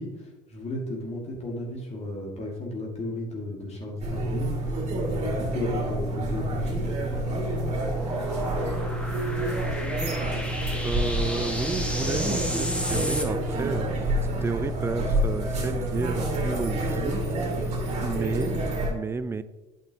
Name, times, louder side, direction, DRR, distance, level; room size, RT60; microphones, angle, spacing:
voice 1, 0.0-7.0, left 1 dB, 40° left, 0 dB, 1.9 m, -34 dB
sound 1, 4.0-18.9, right 1 dB, 40° right, 2.4 m, -28 dB
sound 2, 6.1-13.2, left 1 dB, 5° left, 1.3 m, -35 dB
voice 2, 10.8-14.1 14.4-17.2 18.0-19.4, right 4 dB, 15° right, 14 dB, 0.4 m, -32 dB
8.7 x 6.1 x 2.9 m, 1.1 s
hypercardioid pair, 70°, 17 cm